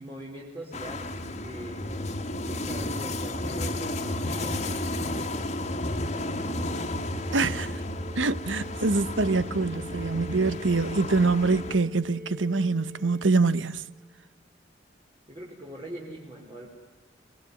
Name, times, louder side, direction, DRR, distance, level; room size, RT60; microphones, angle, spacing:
voice 1, 0.0-1.9 2.5-6.9 15.3-16.7, right 1 dB, 30° right, 4.5 m, -43 dB
sound 1, 0.7-11.8, left 1 dB, 35° left, 2.2 m, -32 dB
sound 2, 6.1-14.1, equal, 55° right, 2.4 m, -44 dB
voice 2, 7.3-7.7 8.2-13.8, right 3 dB, 90° right, 1.0 m, -25 dB
29.5 x 20.5 x 9.7 m
head